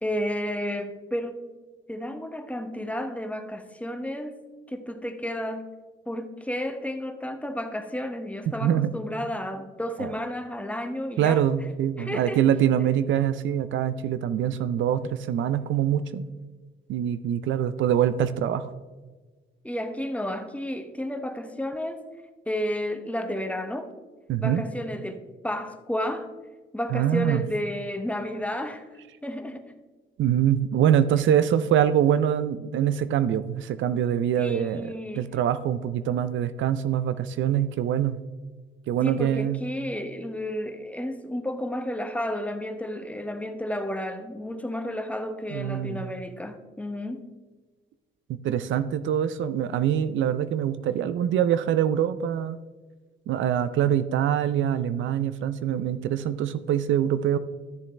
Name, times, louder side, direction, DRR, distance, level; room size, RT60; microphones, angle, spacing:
voice 1, 0.0-1.5 1.9-4.3 4.7-5.7 6.1-11.4 12.0-12.4 19.6-22.0 22.5-23.9 24.4-26.3 26.7-28.9 29.2-29.7 34.4-35.2 39.0-47.3, left 1 dB, 5° left, 7 dB, 0.9 m, -32 dB
voice 2, 8.5-8.9 10.0-10.2 11.2-16.2 16.9-18.7 24.3-24.6 26.9-27.4 30.2-38.2 38.9-39.6 45.5-46.1 48.4-52.6 53.3-57.4, right 10 dB, 75° right, 13 dB, 0.5 m, -24 dB
12.5 x 7.0 x 3.3 m, 1.3 s
cardioid pair, 90°, 20 cm